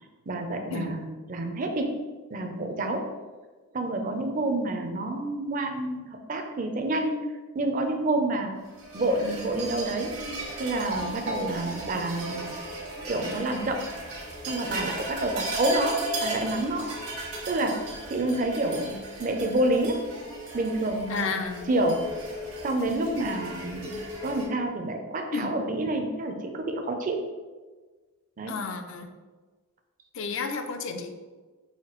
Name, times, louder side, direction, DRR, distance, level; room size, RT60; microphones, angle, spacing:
voice 1, 0.3-2.0 2.3-3.0 3.7-7.2 7.5-8.5 8.9-10.2 10.6-12.5 13.1-13.8 14.4-16.9 17.5-17.8 18.1-20.0 20.5-21.4 21.7-22.0 22.6-23.9 24.2-27.2 28.4-28.5, right 2 dB, 35° right, 5 dB, 0.4 m, -28 dB
sound 1, 8.8-24.5, right 2 dB, 80° right, 1.4 m, -35 dB
voice 2, 21.1-21.7 25.3-25.6 28.5-29.1 30.1-31.1, left 5 dB, 60° left, 6 dB, 0.4 m, -32 dB
5.7 x 2.6 x 3.0 m, 1.3 s
head